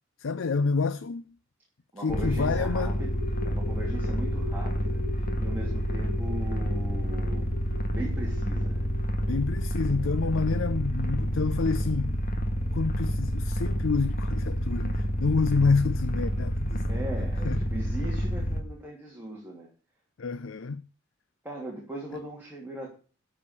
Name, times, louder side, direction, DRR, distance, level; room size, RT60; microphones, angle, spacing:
voice 1, 0.2-1.2 2.0-2.9 9.3-12.2 12.7-16.9 17.4-17.6 20.2-20.8, left 4 dB, 75° left, 0.5 m, -28 dB
voice 2, 1.9-3.1 3.4-7.5 7.9-8.9 16.9-19.7 21.4-22.9, right 1 dB, 10° right, 3.0 m, -39 dB
sound 1, 2.1-18.6, equal, 50° left, 1.8 m, -29 dB
12.5 x 5.0 x 8.3 m
head